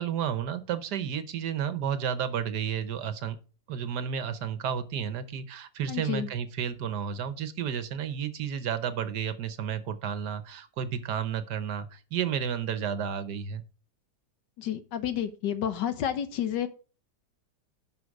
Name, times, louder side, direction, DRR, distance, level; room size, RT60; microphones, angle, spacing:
voice 1, 0.0-3.4 3.7-13.6, right 8 dB, 75° right, 12 dB, 1.5 m, -32 dB
voice 2, 5.9-6.3 14.6-16.7, left 9 dB, 85° left, 11 dB, 1.7 m, -30 dB
11.5 x 5.7 x 4.7 m, 0.37 s
omnidirectional pair, 1.8 m